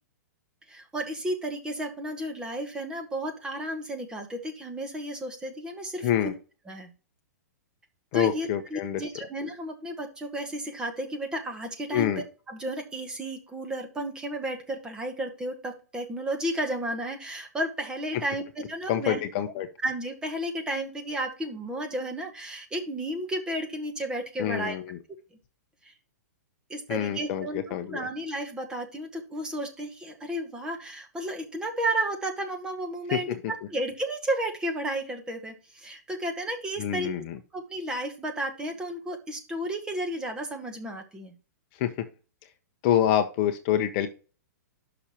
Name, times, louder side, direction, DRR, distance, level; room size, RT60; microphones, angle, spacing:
voice 1, 0.7-6.1 6.7-6.9 8.1-12.1 12.5-19.2 19.8-24.8 25.8-25.9 26.7-27.6 27.9-37.1 37.5-41.3, right 1 dB, 10° right, 3 dB, 1.1 m, -33 dB
voice 2, 6.0-6.3 8.1-9.2 11.9-12.2 18.9-19.7 24.4-25.0 26.9-28.1 33.1-33.4 36.8-37.4 41.7-42.1 42.8-44.1, left 10 dB, 35° left, 8 dB, 0.7 m, -27 dB
6.6 x 6.0 x 4.3 m, 0.35 s
hypercardioid pair, 155°, 10 cm